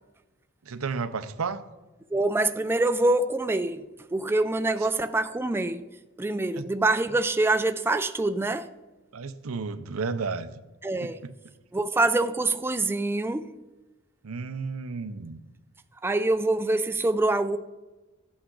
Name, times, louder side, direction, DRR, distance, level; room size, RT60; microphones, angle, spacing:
voice 1, 0.7-1.6 6.6-6.7 9.1-10.5 11.0-11.3 14.2-15.4, right 4 dB, 80° right, 0.7 m, -32 dB
voice 2, 2.1-3.8 4.1-5.9 6.2-8.7 10.8-11.2 11.7-13.6 16.0-17.6, right 2 dB, 10° right, 0.3 m, -25 dB
14.0 x 8.6 x 3.8 m
head